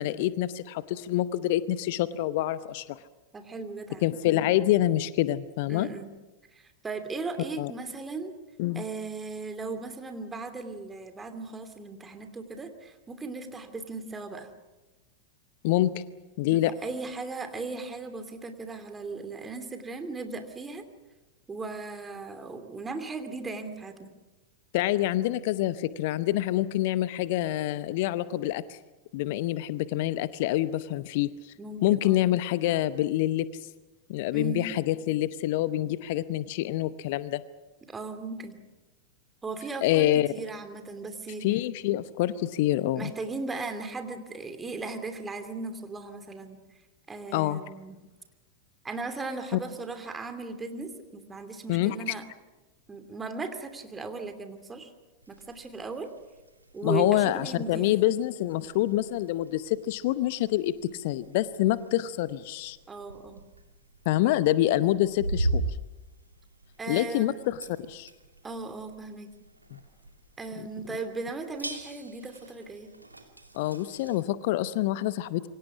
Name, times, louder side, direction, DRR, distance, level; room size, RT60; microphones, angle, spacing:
voice 1, 0.0-3.0 4.0-5.9 7.6-7.7 8.6-8.8 15.6-15.9 16.4-16.7 24.7-28.8 29.1-31.5 31.8-33.5 34.1-37.4 39.8-40.3 41.4-43.1 47.3-47.6 51.7-52.1 56.8-62.8 64.1-65.7 66.9-67.6 67.9-68.1 69.7-69.8 70.6-70.7 73.5-75.5, left 14 dB, 50° left, 16 dB, 0.8 m, -26 dB
voice 2, 3.3-4.0 5.7-6.1 6.5-8.3 8.7-14.5 16.5-20.8 21.5-24.1 31.6-32.3 34.3-34.7 37.9-38.5 39.4-41.4 43.0-46.6 47.1-48.0 48.8-52.2 52.9-54.9 55.3-56.1 56.7-57.9 62.9-63.4 64.2-64.5 66.8-67.4 68.4-69.3 70.4-72.9, right 3 dB, 15° right, 7 dB, 2.7 m, -37 dB
sound 1, 55.2-74.2, right 1 dB, 85° right, 2.5 m, -40 dB
27.5 x 24.0 x 6.2 m, 1.1 s
figure-of-eight pair, 90°, 0 cm